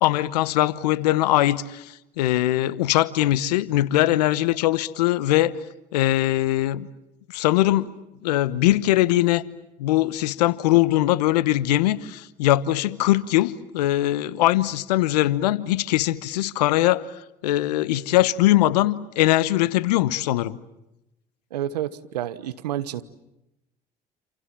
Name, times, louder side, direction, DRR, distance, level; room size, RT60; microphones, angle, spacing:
voice 1, 0.0-5.6 5.9-6.9 7.3-7.9 8.2-9.4 9.8-17.0 17.4-20.6, left 15 dB, 80° left, 1.1 m, -21 dB
voice 2, 21.5-23.0, right 11 dB, 90° right, 1.2 m, -29 dB
28.0 x 28.0 x 7.5 m
hypercardioid pair, 60°, 20 cm